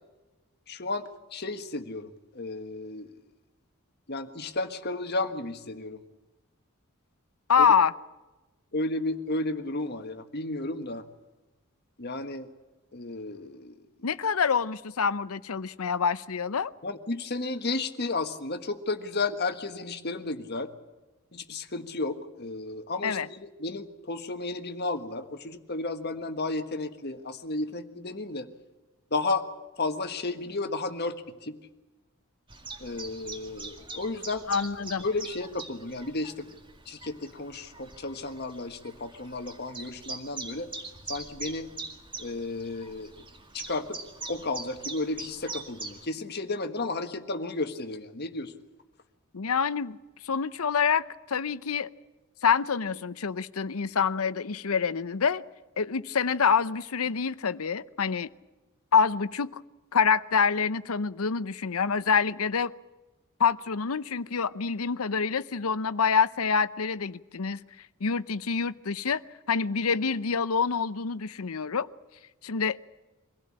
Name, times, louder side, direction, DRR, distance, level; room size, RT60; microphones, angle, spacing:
voice 1, 0.7-1.0 1.3-3.2 4.1-6.0 7.6-7.7 8.7-11.0 12.0-12.5 12.9-13.8 16.8-20.7 21.3-28.5 29.1-29.5 29.8-31.6 32.8-34.4 35.0-36.5 36.8-40.7 41.1-41.7 42.2-43.2 43.5-44.0 44.3-48.5, left 2 dB, 50° left, 1.5 m, -33 dB
voice 2, 7.5-7.9 14.0-16.7 23.0-23.3 34.5-35.0 49.3-50.0 50.2-51.9 52.4-55.4 55.8-58.3 58.9-59.6 59.9-62.7 63.4-67.6 68.0-69.2 69.5-71.9 72.4-72.8, left 6 dB, 80° left, 0.7 m, -26 dB
Chirp tweet, 32.5-46.1, right 3 dB, 25° right, 2.2 m, -43 dB
24.5 x 16.5 x 8.7 m
head